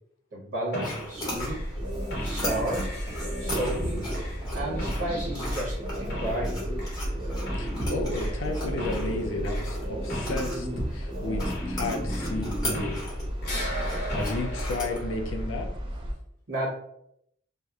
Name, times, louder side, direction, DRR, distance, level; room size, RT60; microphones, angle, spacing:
voice 1, 0.3-1.6 2.2-2.9 3.4-4.0 4.5-6.6 16.5-16.7, right 1 dB, 65° right, -6 dB, 0.9 m, -32 dB
sound 1, 0.7-1.2 1.4-13.2 13.4-15.6, equal, 60° left, 0.9 m, -35 dB
sound 2, 0.8-15.0, equal, 20° left, 0.9 m, -39 dB
sound 3, 1.3-16.1, equal, 25° right, 0.3 m, -34 dB
voice 2, 7.5-13.1 14.1-15.7, left 2 dB, 85° left, 3 dB, 0.4 m, -33 dB
2.8 x 2.0 x 2.3 m, 0.73 s
head